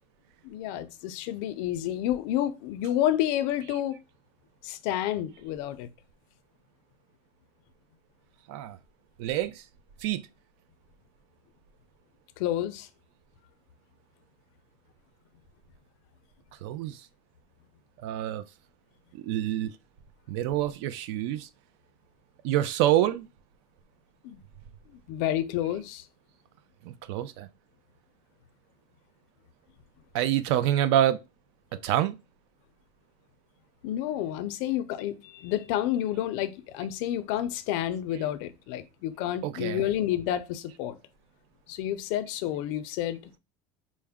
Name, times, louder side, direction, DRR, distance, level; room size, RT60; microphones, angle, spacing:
voice 1, 0.4-4.0 4.6-5.9 12.4-12.9 20.5-20.6 24.2-24.4 25.1-26.0 33.8-41.0 41.7-43.2, left 12 dB, 65° left, 0.5 m, -30 dB
voice 2, 9.2-9.6 10.0-10.2 16.6-17.0 18.0-18.4 19.1-19.7 20.3-21.5 22.4-23.3 26.9-27.5 30.1-31.2 31.8-32.1 39.4-39.9, right 12 dB, 80° right, 0.5 m, -26 dB
4.4 x 2.1 x 3.5 m
cardioid pair, 175°, 13 cm